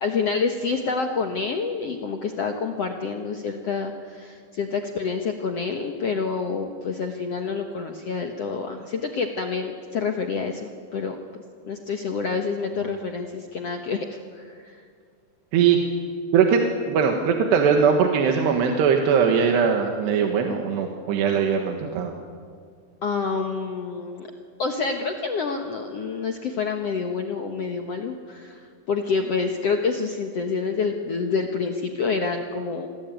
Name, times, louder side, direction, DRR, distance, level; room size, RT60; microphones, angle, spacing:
voice 1, 0.0-11.2 11.6-14.8 23.0-24.3 24.6-32.9, left 5 dB, 70° left, 4 dB, 1.4 m, -28 dB
voice 2, 16.3-22.1, right 6 dB, 75° right, 3 dB, 3.6 m, -20 dB
27.5 x 19.5 x 9.2 m, 2.2 s
omnidirectional pair, 4.9 m